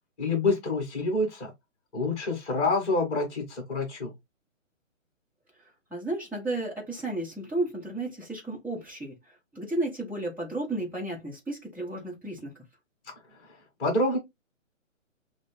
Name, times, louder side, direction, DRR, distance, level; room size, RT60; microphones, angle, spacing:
voice 1, 0.2-1.5 1.9-4.1 13.8-14.2, left 2 dB, 15° left, 1.9 m, -27 dB
voice 2, 5.9-12.5, right 2 dB, 5° right, 1.5 m, -33 dB
6.4 x 2.5 x 2.3 m
hypercardioid pair, 155°, 40 cm